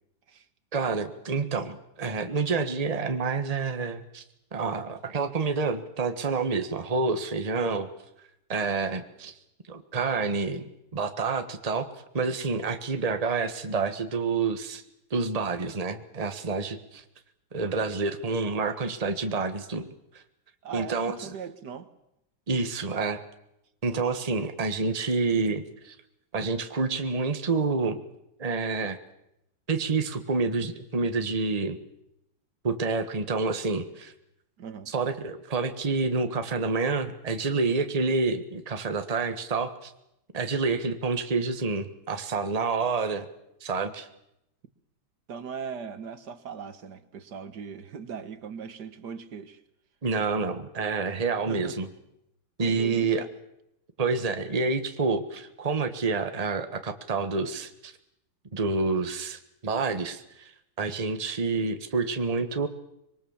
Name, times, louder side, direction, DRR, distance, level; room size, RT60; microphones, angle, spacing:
voice 1, 0.7-4.2 4.5-7.9 8.5-9.3 9.7-10.6 10.9-11.9 12.1-14.8 15.1-17.0 17.5-19.9 20.1-20.2 20.7-21.1 22.5-23.2 23.8-25.9 26.3-28.0 28.4-29.0 29.7-31.8 32.6-34.1 34.9-39.9 40.3-43.2 43.6-44.1 50.0-51.9 52.6-53.2 54.0-57.9 58.5-60.5 60.8-62.7, right 4 dB, 20° right, 8 dB, 1.4 m, -28 dB
voice 2, 20.6-21.9 24.3-24.5 34.6-34.9 45.3-49.6 51.5-51.8 52.6-53.3, right 6 dB, 60° right, 11 dB, 1.9 m, -39 dB
25.5 x 23.0 x 7.3 m, 0.83 s
omnidirectional pair, 2.1 m